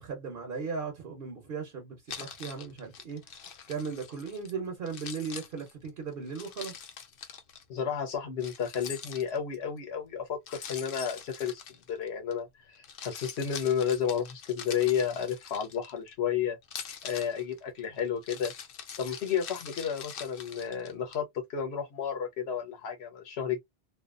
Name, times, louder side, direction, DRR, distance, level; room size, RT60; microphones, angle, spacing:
voice 1, 0.0-3.2 3.7-6.8, right 5 dB, 65° right, 1.0 m, -37 dB
Keys jangling, 2.1-4.5 4.9-7.6 8.4-9.6 10.5-12.3 12.8-16.1 16.6-21.2, left 7 dB, 65° left, 0.7 m, -44 dB
voice 2, 7.7-11.6 11.9-16.6 17.0-18.5 19.0-21.2 21.5-23.6, left 8 dB, 85° left, 1.0 m, -32 dB
2.6 x 2.3 x 2.4 m
omnidirectional pair, 1.1 m